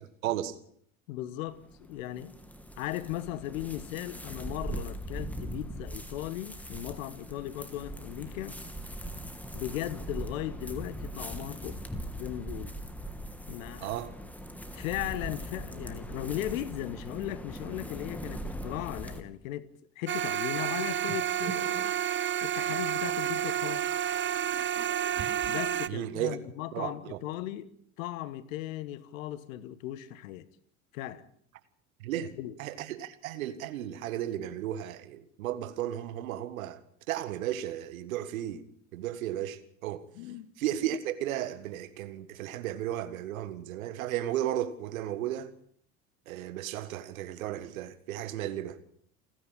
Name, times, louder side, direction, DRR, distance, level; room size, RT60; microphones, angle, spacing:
voice 1, 0.2-0.5 13.8-14.1 25.9-26.4 26.7-27.2 32.0-36.8 37.1-38.6 38.9-40.0 40.6-45.5 46.3-49.0, right 12 dB, 70° right, 1.7 m, -34 dB
voice 2, 1.1-2.4 2.8-8.6 9.5-11.8 12.2-12.8 13.5-14.0 14.7-19.7 19.9-21.9 22.4-23.9 25.5-27.7 28.0-30.5 30.9-31.3 32.4-32.6 40.1-40.5, left 14 dB, 70° left, 1.4 m, -37 dB
sound 1, 1.5-19.2, right 1 dB, 5° left, 2.8 m, -40 dB
sound 2, 20.1-25.9, right 10 dB, 25° right, 0.9 m, -30 dB
28.5 x 10.5 x 8.6 m
figure-of-eight pair, 65°, 42 cm